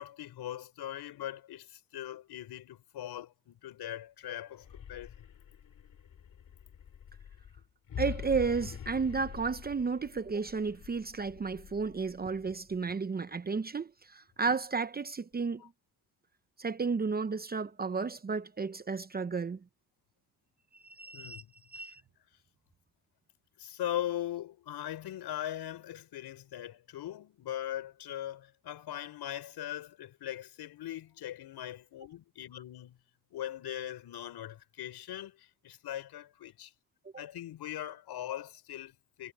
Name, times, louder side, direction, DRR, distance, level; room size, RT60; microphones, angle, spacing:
voice 1, 0.0-5.1 21.1-21.5 21.8-21.9 23.6-33.0 33.3-36.7 37.2-39.3, left 12 dB, 75° left, 5.8 m, -40 dB
sound 1, 4.5-12.6, left 8 dB, 50° left, 2.7 m, -45 dB
voice 2, 8.0-15.6 16.6-19.6 20.7-21.4 21.7-22.0, right 5 dB, 25° right, 0.8 m, -33 dB
cardioid pair, 105°, 40 cm